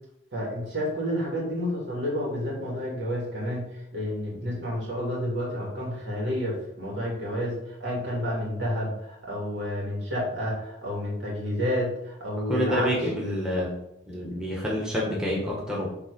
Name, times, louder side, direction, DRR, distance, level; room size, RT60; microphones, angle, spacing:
voice 1, 0.3-12.9, equal, 65° right, -4 dB, 2.9 m, -30 dB
voice 2, 12.5-13.7 14.1-15.9, equal, 5° right, -4 dB, 1.3 m, -27 dB
7.6 x 3.5 x 5.2 m, 0.82 s
head